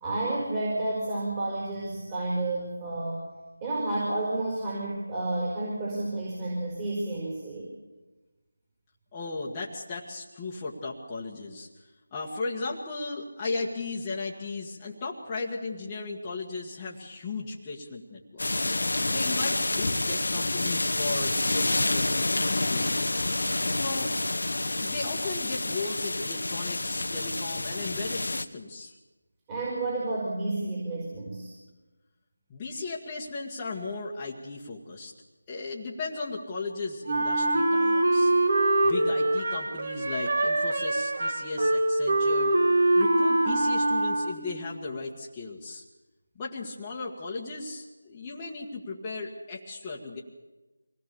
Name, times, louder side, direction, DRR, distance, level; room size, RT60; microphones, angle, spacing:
voice 1, 0.0-3.3 3.6-7.7 29.5-31.5, right 2 dB, 20° right, -5 dB, 5.2 m, -30 dB
voice 2, 9.1-11.7 12.1-18.7 19.1-23.1 23.7-24.1 24.8-28.9 32.5-35.1 35.5-38.3 38.8-42.6 43.0-45.8 46.4-50.2, left 3 dB, 15° left, -5 dB, 1.9 m, -36 dB
sound 1, 18.4-28.4, left 2 dB, 75° left, 1.4 m, -28 dB
Wind instrument woodwind instrument, 37.1-44.6, right 2 dB, 50° right, 2.6 m, -24 dB
25.0 x 18.0 x 7.1 m, 1.2 s
figure-of-eight pair, 165°, 0 cm